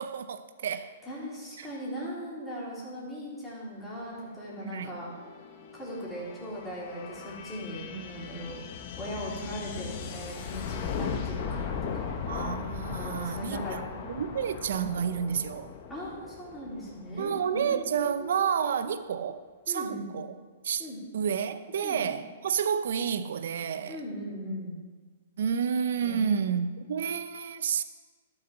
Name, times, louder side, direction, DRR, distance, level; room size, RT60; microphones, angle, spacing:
voice 1, 0.0-0.9 1.6-1.7 4.6-4.9 7.9-8.5 12.3-13.8 14.1-15.7 17.2-20.3 20.6-20.9 21.1-24.0 25.4-27.8, right 7 dB, 70° right, 0.8 m, -30 dB
voice 2, 1.0-5.1 5.7-8.6 9.0-12.1 12.9-14.0 15.9-18.5 19.7-20.1 20.8-21.0 21.8-22.0 23.9-24.8 26.0-26.4, equal, 5° left, 3.8 m, -39 dB
sound 1, 4.4-17.9, left 6 dB, 45° left, 1.1 m, -38 dB
12.5 x 6.5 x 6.2 m
hypercardioid pair, 150°, 0 cm